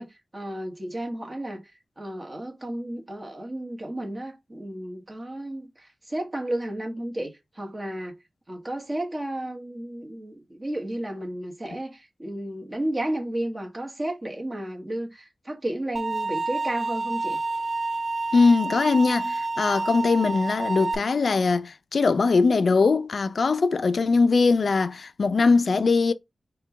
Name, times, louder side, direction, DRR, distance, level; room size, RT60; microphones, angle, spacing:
voice 1, 0.0-1.6 2.0-8.2 8.5-17.4, right 1 dB, 25° right, 1.2 m, -33 dB
sound 1, 16.0-21.0, right 3 dB, 40° right, 0.3 m, -29 dB
voice 2, 18.3-26.1, left 4 dB, 65° left, 0.4 m, -21 dB
4.2 x 2.2 x 4.0 m
wide cardioid pair, 105°, 0 cm